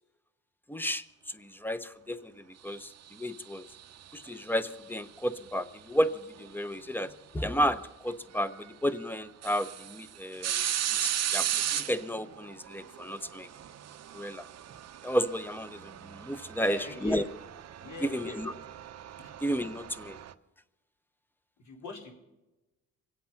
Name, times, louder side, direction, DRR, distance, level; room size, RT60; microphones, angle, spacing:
voice 1, 0.7-3.7 4.1-13.5 14.1-14.5 15.0-17.3 18.0-18.5 19.4-20.2, equal, 5° left, 13 dB, 0.8 m, -32 dB
sound 1, 3.1-4.5 6.4-6.5 8.1-8.2 8.6-8.7 9.2-20.3, right 11 dB, 60° right, 0.8 m, -36 dB
voice 2, 16.6-17.2 17.8-18.5 19.2-19.3 21.6-22.1, left 3 dB, 70° left, 0 dB, 4.7 m, -41 dB
25.0 x 8.3 x 5.8 m, 1.0 s
cardioid pair, 90°, 30 cm